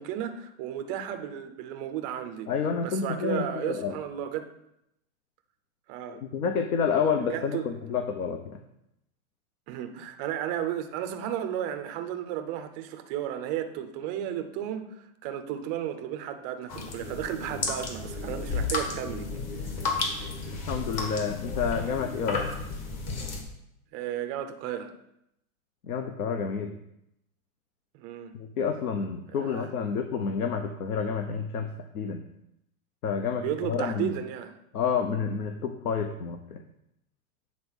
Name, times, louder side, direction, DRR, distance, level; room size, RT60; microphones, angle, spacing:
voice 1, 0.0-2.5 2.8-4.5 5.9-6.2 7.3-7.8 9.7-19.3 19.8-19.9 23.9-24.9 27.9-28.3 29.3-29.7 33.4-34.6, right 10 dB, 20° right, 8 dB, 0.3 m, -34 dB
voice 2, 2.5-4.0 6.3-8.6 18.3-18.4 20.7-22.4 25.9-26.7 28.3-31.7 31.9-32.2 33.0-34.1 34.7-36.6, left 6 dB, 90° left, 7 dB, 1.0 m, -29 dB
sound 1, 16.7-23.4, left 3 dB, 35° left, 1.7 m, -32 dB
8.7 x 4.2 x 6.3 m, 0.81 s
supercardioid pair, 140°, 43 cm